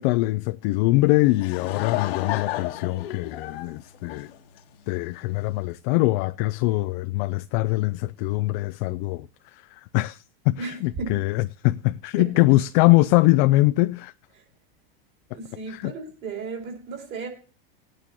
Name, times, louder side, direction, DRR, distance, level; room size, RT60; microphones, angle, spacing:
voice 1, 0.0-4.3 4.9-14.1 15.7-15.9, left 20 dB, 55° left, 0.5 m, -23 dB
Laughter / Crowd, 1.1-4.9, left 14 dB, 75° left, 1.4 m, -32 dB
voice 2, 10.6-11.3 12.2-12.6 14.4-14.5 15.3-17.3, right 4 dB, 40° right, 4.5 m, -35 dB
19.5 x 8.9 x 2.8 m
supercardioid pair, 130°, 31 cm